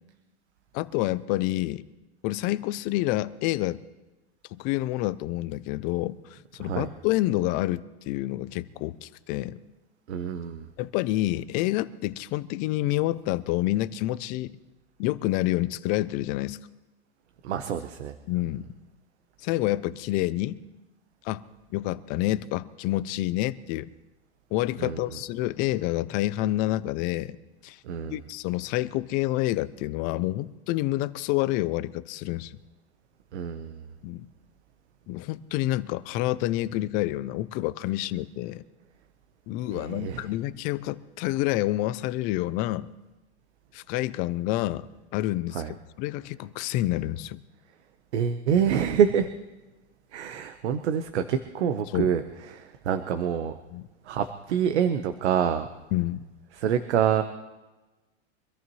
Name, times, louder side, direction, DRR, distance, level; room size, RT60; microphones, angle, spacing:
voice 1, 0.7-1.9 2.2-3.8 4.5-9.6 10.8-14.6 15.0-16.6 18.3-18.7 19.4-20.6 21.2-21.4 21.7-23.9 24.5-27.4 27.6-27.8 28.1-32.6 34.0-34.3 35.1-38.6 39.5-42.9 43.7-44.9 45.1-47.4 51.9-52.1 53.7-53.9 55.9-56.2, left 16 dB, 25° left, 16 dB, 0.4 m, -28 dB
voice 2, 10.1-10.7 17.4-18.1 24.8-25.0 27.9-28.2 33.3-33.8 39.7-40.2 45.5-45.7 48.1-49.3 50.1-52.2 52.5-53.5 54.1-55.7 56.6-57.2, right 8 dB, 80° right, 9 dB, 1.1 m, -26 dB
24.5 x 14.0 x 3.1 m, 1.1 s
supercardioid pair, 150°, 34 cm